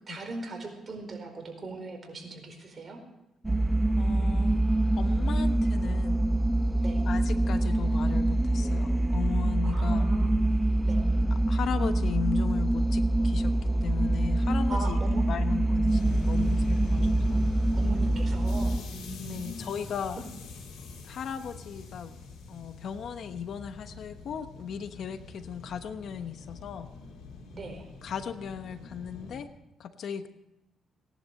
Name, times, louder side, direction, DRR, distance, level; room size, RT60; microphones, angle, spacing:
voice 1, 0.0-3.0 6.8-7.0 9.6-11.0 14.7-15.3 17.7-19.6 27.5-27.9, right 2 dB, 40° right, 3 dB, 4.6 m, -39 dB
sound 1, 3.4-18.8, right 1 dB, 15° right, 0.7 m, -25 dB
voice 2, 4.0-4.6 5.0-6.2 7.0-10.1 11.5-15.0 15.3-17.5 19.2-20.2 21.0-22.1 22.5-26.9 28.0-29.5 29.8-30.3, left 8 dB, 65° left, 10 dB, 1.0 m, -36 dB
sound 2, 15.9-29.4, left 3 dB, 80° left, 3.9 m, -43 dB
18.5 x 11.0 x 6.5 m, 0.90 s
cardioid pair, 90°, 0 cm